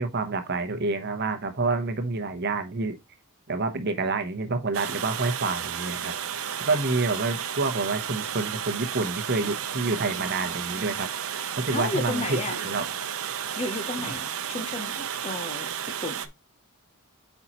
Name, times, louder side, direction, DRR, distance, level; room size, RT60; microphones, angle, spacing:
voice 1, 0.0-2.9 3.5-6.1 6.7-11.1 11.6-12.4 12.6-12.9, right 3 dB, 50° right, 0.9 m, -28 dB
Water, 4.7-16.3, right 9 dB, 70° right, 0.7 m, -33 dB
voice 2, 11.7-12.6 13.5-15.7 16.0-16.3, left 1 dB, 30° left, 0.8 m, -32 dB
8.3 x 4.4 x 3.0 m
head